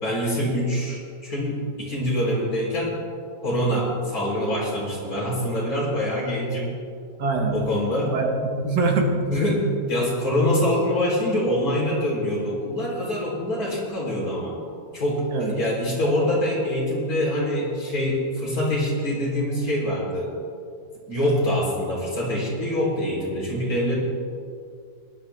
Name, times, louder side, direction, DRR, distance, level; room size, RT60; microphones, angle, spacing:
voice 1, 0.0-3.0 3.4-6.7 7.5-8.1 9.3-9.6 9.9-14.6 14.9-20.3 21.1-24.0, left 1 dB, 60° left, -5 dB, 4.1 m, -25 dB
voice 2, 7.2-7.7 8.1-9.8 15.3-15.6 15.9-16.1, right 3 dB, 80° right, 3 dB, 2.0 m, -24 dB
18.5 x 11.5 x 3.4 m, 2.3 s
omnidirectional pair, 1.8 m